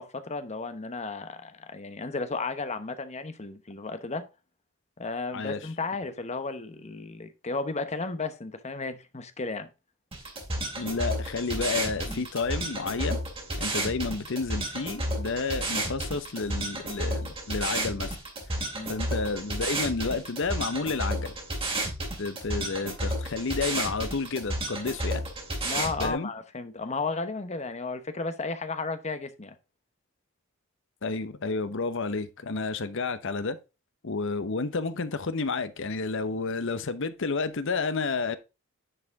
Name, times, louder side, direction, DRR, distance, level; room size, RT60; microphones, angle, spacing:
voice 1, 0.0-4.3 5.0-9.7 12.0-12.2 18.7-19.0 25.6-29.6, left 3 dB, 30° left, 0.9 m, -34 dB
sound 1, 10.1-26.1, right 1 dB, 25° right, 2.8 m, -32 dB
voice 2, 10.8-13.2 13.6-18.2 18.5-18.6 18.9-21.4 22.2-25.2 26.0-26.3 31.0-33.6 34.0-38.4, left 4 dB, 60° left, 0.8 m, -30 dB
9.9 x 4.9 x 3.5 m
head